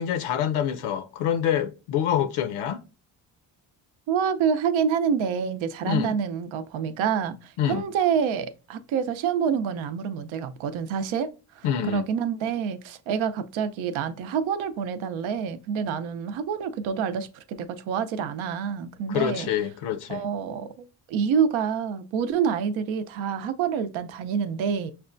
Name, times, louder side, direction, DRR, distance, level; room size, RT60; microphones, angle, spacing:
voice 1, 0.0-2.8 5.8-6.1 7.6-7.9 11.6-12.1 19.1-20.2, left 9 dB, 75° left, 0.6 m, -26 dB
voice 2, 4.1-11.3 11.6-19.5 20.1-24.9, right 7 dB, 70° right, 0.6 m, -27 dB
5.8 x 2.2 x 2.5 m
supercardioid pair, 55°, 50 cm